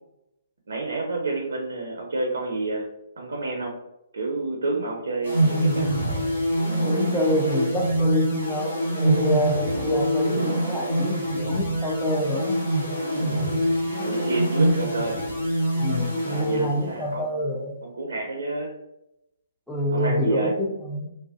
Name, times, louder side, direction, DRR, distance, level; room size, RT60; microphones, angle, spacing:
voice 1, 0.7-2.9 3.2-3.7 4.1-5.9 13.8-15.2 16.2-18.7 19.9-20.5, right 2 dB, 65° right, 0 dB, 0.5 m, -29 dB
sound 1, 5.2-17.1, right 1 dB, 80° left, 1.2 m, -25 dB
voice 2, 6.8-12.6 15.8-17.8 19.7-21.1, left 1 dB, 5° left, -2 dB, 0.5 m, -27 dB
2.5 x 2.1 x 2.4 m, 0.84 s
figure-of-eight pair, 125°, 0 cm